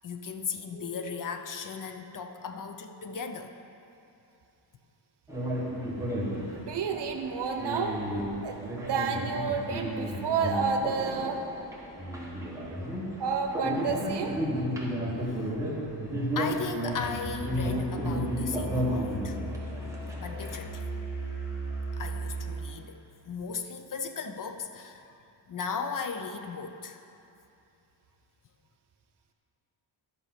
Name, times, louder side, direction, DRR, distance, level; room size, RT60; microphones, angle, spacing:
voice 1, 0.0-3.6 15.2-15.5 16.4-19.4 19.8-20.9 21.9-25.1 25.5-27.0, left 5 dB, 45° left, 7 dB, 0.6 m, -37 dB
sound 1, 0.7-3.3, equal, 45° right, 1.8 m, -50 dB
sound 2, 5.3-20.6, equal, 5° right, 1.4 m, -33 dB
voice 2, 6.5-8.0 8.4-11.4 13.2-14.3, right 5 dB, 60° right, 4 dB, 1.0 m, -30 dB
Musical instrument, 16.9-22.6, right 1 dB, 75° left, 2.3 m, -36 dB
12.0 x 5.5 x 5.9 m, 2.7 s
wide cardioid pair, 135°, 45 cm